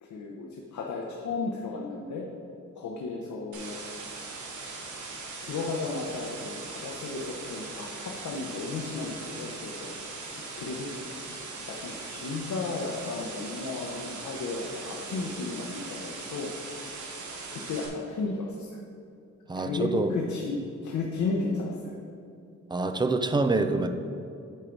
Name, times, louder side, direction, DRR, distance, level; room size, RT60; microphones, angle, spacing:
voice 1, 0.0-2.2 2.8-3.8 5.4-9.9 10.6-10.9 11.7-16.5 17.5-18.8 19.6-22.0, left 3 dB, 80° left, -1 dB, 0.9 m, -34 dB
sound 1, 3.5-17.9, right 3 dB, 80° right, 1.3 m, -40 dB
voice 2, 19.5-20.2 22.7-23.9, right 3 dB, 15° right, 8 dB, 0.3 m, -26 dB
8.9 x 4.5 x 5.2 m, 2.5 s
wide cardioid pair, 170°, 29 cm